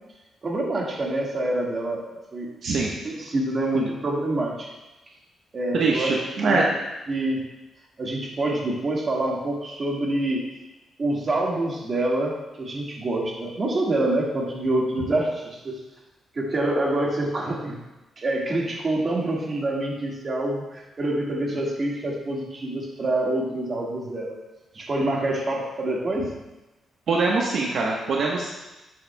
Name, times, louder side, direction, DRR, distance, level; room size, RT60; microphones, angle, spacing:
voice 1, 0.4-2.0 2.3-2.5 3.0-4.7 5.5-6.2 6.5-6.7 7.1-7.4 8.0-10.5 11.0-15.8 16.3-17.8 18.2-24.4 24.7-26.3, right 1 dB, 35° right, -2 dB, 1.8 m, -26 dB
voice 2, 5.7-6.6 21.5-21.6 27.1-28.5, right 3 dB, 65° right, -3 dB, 1.1 m, -23 dB
11.5 x 7.5 x 2.3 m, 1.0 s
cardioid pair, 130°, 0 cm